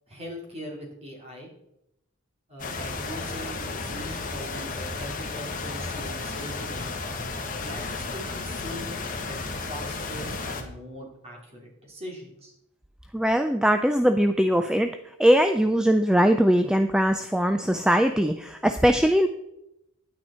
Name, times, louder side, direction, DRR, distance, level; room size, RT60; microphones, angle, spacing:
voice 1, 0.1-1.5 2.5-7.0 7.6-9.4 9.7-12.5, equal, 30° right, -1 dB, 2.8 m, -41 dB
sound 1, 2.6-10.6, left 3 dB, 40° left, 1.4 m, -33 dB
voice 2, 13.1-19.3, equal, 5° right, 8 dB, 0.3 m, -21 dB
10.5 x 9.2 x 4.3 m, 0.83 s
head